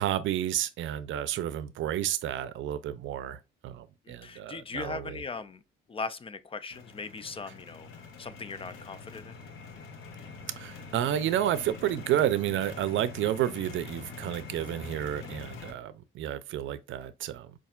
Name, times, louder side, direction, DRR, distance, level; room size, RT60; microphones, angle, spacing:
voice 1, 0.0-5.2 10.5-17.6, right 11 dB, 75° right, 0.5 m, -31 dB
voice 2, 4.0-5.6 5.9-9.4 15.2-15.4, left 4 dB, 30° left, 0.4 m, -39 dB
sound 1, 6.7-15.7, left 4 dB, 85° left, 0.8 m, -45 dB
5.5 x 2.5 x 2.4 m
cardioid pair, 90°, 20 cm